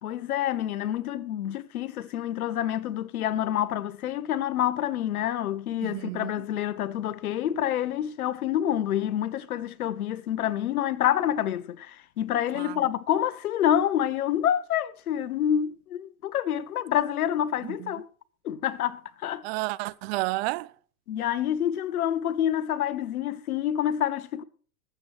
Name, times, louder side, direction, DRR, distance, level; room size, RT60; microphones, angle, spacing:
voice 1, 0.0-18.0 18.4-19.4 21.1-24.4, left 10 dB, 70° left, 1.1 m, -27 dB
voice 2, 5.8-6.3 12.5-12.8 17.6-17.9 19.4-20.7, right 21 dB, 45° right, 0.6 m, -31 dB
21.0 x 8.1 x 3.1 m
hypercardioid pair, 105°, 45 cm